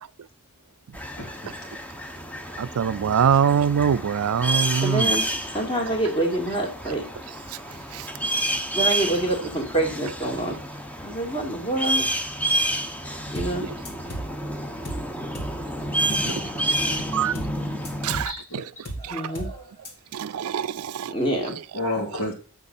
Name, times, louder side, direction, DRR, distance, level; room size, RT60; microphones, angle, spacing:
sound 1, 0.9-18.2, right 1 dB, 5° left, 1.0 m, -29 dB
voice 1, 1.2-1.5 9.5-9.6 16.1-17.0 18.3-18.8 21.7-22.3, left 1 dB, 75° left, 3.6 m, -32 dB
voice 2, 2.6-5.2 7.5-7.6 7.9-8.1 13.6-13.7 15.9-16.4 17.1-17.3 18.0-18.6 19.0-19.3 20.1-21.1 21.4-21.5, right 7 dB, 85° right, 0.4 m, -24 dB
voice 3, 4.8-7.0 8.7-10.6 11.0-12.1 13.3-13.7 19.0-19.7 21.1-21.6, right 1 dB, 25° left, 2.7 m, -26 dB
sound 2, 13.4-13.6 13.9-14.3 14.9-15.1 15.4-15.6 17.4-17.6 17.9-18.3 18.9-19.1 19.4-19.6 19.9-20.0, right 1 dB, 50° left, 2.7 m, -34 dB
8.5 x 6.2 x 4.2 m
head